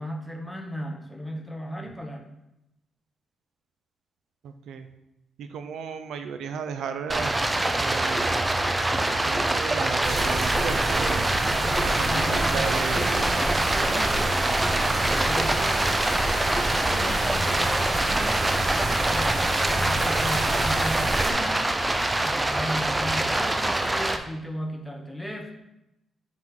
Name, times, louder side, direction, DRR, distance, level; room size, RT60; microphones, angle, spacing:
voice 1, 0.0-2.3 11.5-14.3 15.0-16.0 16.8-21.6 22.2-25.5, equal, 5° left, 1 dB, 0.8 m, -36 dB
voice 2, 4.4-4.9 5.4-7.3 7.8-8.5 9.2-11.3 11.8-13.3, right 6 dB, 85° right, 9 dB, 0.4 m, -34 dB
Stream, 7.1-24.2, right 1 dB, 15° right, 0.4 m, -25 dB
sound 1, 8.2-17.6, left 1 dB, 40° left, 1.0 m, -39 dB
sound 2, 10.0-21.3, right 2 dB, 40° right, 0.8 m, -29 dB
5.5 x 3.7 x 4.7 m, 0.89 s
cardioid pair, 130°, 0 cm